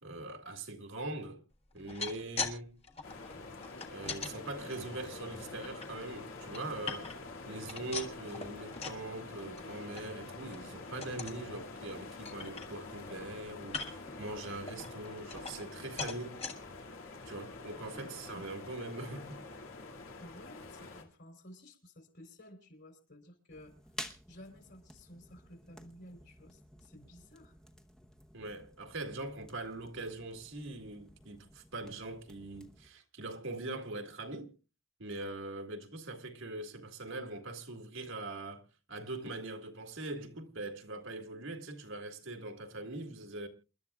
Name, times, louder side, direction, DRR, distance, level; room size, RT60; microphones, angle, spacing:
voice 1, 0.0-1.4 1.7-2.8 3.9-7.1 7.5-16.4 17.2-19.4 28.3-34.5 35.0-43.5, right 2 dB, 70° right, 1.9 m, -42 dB
sound 1, 1.7-2.6 2.8-4.3 4.9-5.9 6.3-7.3 7.6-9.0 9.4-9.6 10.0-10.1 10.4-10.7 11.0-11.4 11.9-12.0 12.2-13.1 13.6-14.1 14.7-15.7 16.0-16.5 17.1-17.2 17.6-17.7, left 4 dB, 30° left, 1.4 m, -41 dB
sound 2, 3.0-21.0, left 3 dB, 85° left, 2.3 m, -47 dB
voice 2, 17.8-18.5 20.2-27.6, left 1 dB, 55° left, 3.7 m, -54 dB
sound 3, 23.5-32.9, equal, 5° left, 0.9 m, -52 dB
28.5 x 12.0 x 2.4 m
head